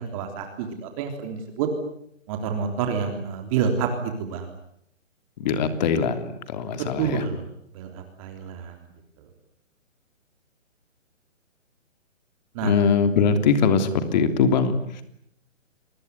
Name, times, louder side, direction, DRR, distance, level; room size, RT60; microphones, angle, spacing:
voice 1, 0.0-1.7 2.3-4.5 6.8-7.5 7.7-8.9 9.2-9.3 12.5-12.7, right 6 dB, 25° right, 5 dB, 3.6 m, -28 dB
voice 2, 5.4-7.2 12.6-15.0, left 5 dB, 35° left, 9 dB, 3.2 m, -22 dB
29.0 x 21.5 x 9.6 m, 0.73 s
hypercardioid pair, 155°, 39 cm